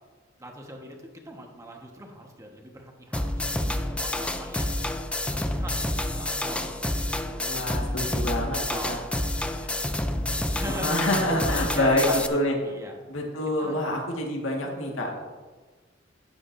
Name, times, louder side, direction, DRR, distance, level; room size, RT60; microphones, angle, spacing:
voice 1, 0.4-1.0 1.2-4.8 5.3-5.8 6.1-13.8 14.6-15.2, right 1 dB, 15° right, 1 dB, 1.3 m, -41 dB
sound 1, 3.1-12.3, left 1 dB, 5° left, 0.5 m, -29 dB
voice 2, 7.5-8.6 8.8-9.0 10.7-12.5 13.1-15.2, left 1 dB, 90° left, 0 dB, 1.8 m, -26 dB
12.5 x 9.4 x 2.7 m, 1.4 s
head